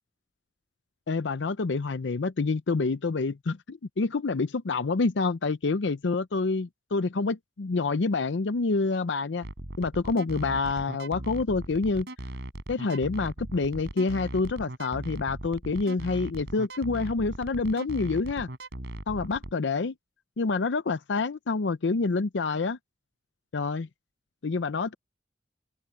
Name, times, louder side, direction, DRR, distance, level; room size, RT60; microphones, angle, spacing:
voice 1, 1.1-9.5 9.8-12.1 12.7-18.5 19.1-19.9 20.4-22.8 23.5-23.9 24.4-24.9, left 3 dB, 75° left, 0.6 m, -27 dB
sound 1, 9.4-19.5, right 1 dB, 65° right, 4.3 m, -38 dB
open air
head